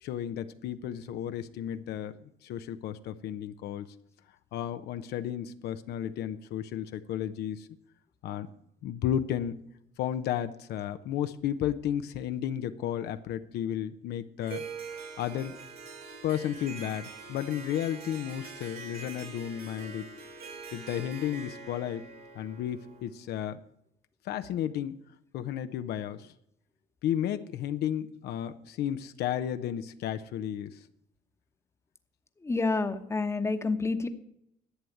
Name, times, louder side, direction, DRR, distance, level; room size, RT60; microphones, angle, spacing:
voice 1, 0.0-3.9 4.5-7.7 8.2-8.5 8.8-9.6 10.0-14.6 15.2-15.5 16.2-20.1 20.7-22.1 22.3-23.6 24.2-25.0 25.3-26.3 27.0-30.9, left 10 dB, 75° left, 10 dB, 0.7 m, -33 dB
Harp, 14.4-23.2, right 4 dB, 65° right, 2.7 m, -44 dB
voice 2, 32.4-34.1, left 3 dB, 15° left, 9 dB, 1.0 m, -28 dB
11.5 x 7.8 x 8.4 m, 0.77 s
cardioid pair, 110°, 17 cm